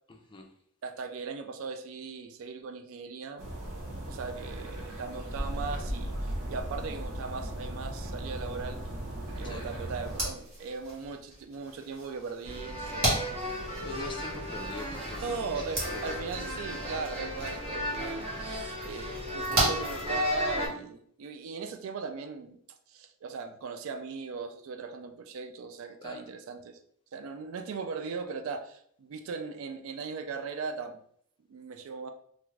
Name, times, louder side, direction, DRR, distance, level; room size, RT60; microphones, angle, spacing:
voice 1, 0.1-0.5 9.4-9.7 13.8-16.4 26.0-26.2, left 3 dB, 20° left, 2 dB, 0.3 m, -44 dB
voice 2, 0.8-3.4 4.1-8.8 9.4-13.4 15.2-22.6 22.9-26.8 27.1-31.0 31.5-32.1, right 4 dB, 70° right, 7 dB, 0.3 m, -38 dB
sound 1, 3.4-10.2, right 1 dB, 85° right, 0.7 m, -37 dB
sound 2, 10.0-20.7, right 1 dB, 45° right, 1.2 m, -36 dB
sound 3, 12.4-20.7, left 1 dB, 25° right, 0.6 m, -35 dB
2.5 x 2.4 x 3.1 m, 0.65 s
head